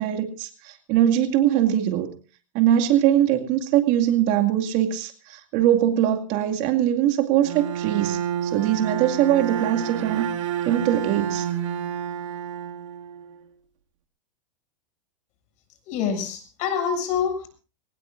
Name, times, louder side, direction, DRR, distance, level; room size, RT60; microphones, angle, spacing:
voice 1, 0.0-2.1 2.5-10.3 10.7-11.5, right 11 dB, 50° right, 6 dB, 2.2 m, -22 dB
Bowed string instrument, 7.4-13.4, right 9 dB, 75° right, 2.2 m, -29 dB
voice 2, 15.9-17.5, left 7 dB, 45° left, 7 dB, 7.2 m, -26 dB
22.0 x 19.0 x 2.6 m, 0.36 s
hypercardioid pair, 110°, 16 cm